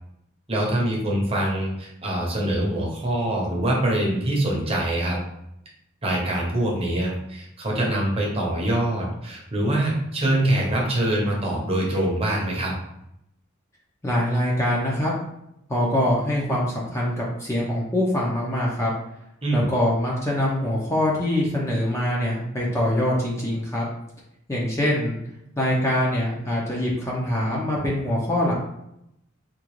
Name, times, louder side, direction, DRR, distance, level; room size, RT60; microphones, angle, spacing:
voice 1, 0.5-5.2 6.0-12.7 19.4-19.7, right 1 dB, 30° right, -2 dB, 0.8 m, -24 dB
voice 2, 14.0-15.1 15.7-18.9 19.5-23.9 24.5-25.2 25.6-28.5, left 1 dB, 15° left, -4 dB, 0.6 m, -24 dB
3.7 x 2.4 x 3.0 m, 0.81 s
head